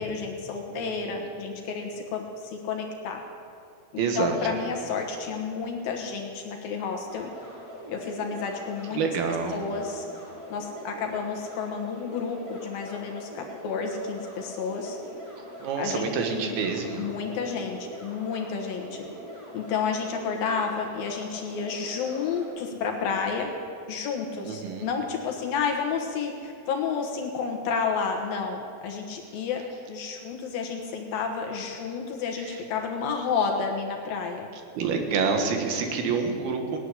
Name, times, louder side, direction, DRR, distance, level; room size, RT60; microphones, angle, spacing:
voice 1, 0.0-3.2 4.2-7.3 7.9-9.0 9.5-10.1 10.5-15.0 15.8-16.6 17.0-19.0 19.5-23.5 23.9-29.6 29.9-34.5, left 5 dB, 75° left, 2 dB, 3.0 m, -31 dB
voice 2, 0.7-1.3 4.0-4.4 8.9-9.6 15.6-17.1 24.4-24.9 32.4-32.6 34.8-36.8, right 5 dB, 90° right, 4 dB, 3.4 m, -28 dB
sound 1, 7.1-22.5, equal, 25° right, 5.4 m, -43 dB
17.5 x 8.2 x 10.0 m, 2.5 s
omnidirectional pair, 4.3 m